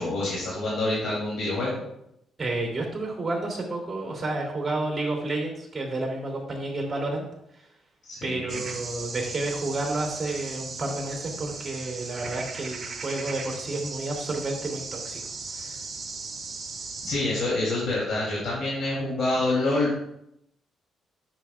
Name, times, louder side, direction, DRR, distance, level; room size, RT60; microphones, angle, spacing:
voice 1, 0.0-1.7 8.0-8.6 17.0-20.0, left 2 dB, 65° left, -7 dB, 3.1 m, -27 dB
voice 2, 2.4-7.2 8.2-15.2 15.5-15.8, right 2 dB, 25° right, 0 dB, 2.8 m, -30 dB
sound 1, 8.5-17.1, right 4 dB, 45° right, 2.1 m, -37 dB
9.8 x 6.8 x 2.4 m, 0.78 s
cardioid pair, 90°, 0 cm